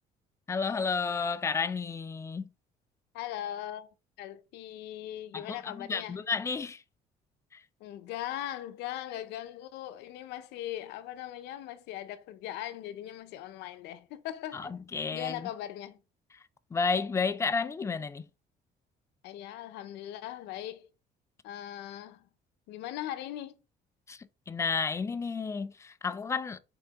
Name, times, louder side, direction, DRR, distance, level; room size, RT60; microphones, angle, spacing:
voice 1, 0.5-2.4 5.3-6.8 7.5-7.6 14.5-15.5 16.7-18.3 24.1-26.6, left 5 dB, 15° left, 0.3 m, -32 dB
voice 2, 3.1-3.9 4.2-6.2 7.8-14.7 15.1-16.0 19.2-20.9 21.4-22.3 22.7-23.6, left 12 dB, 85° left, 0.5 m, -39 dB
4.4 x 3.7 x 2.9 m
cardioid pair, 110°, 17 cm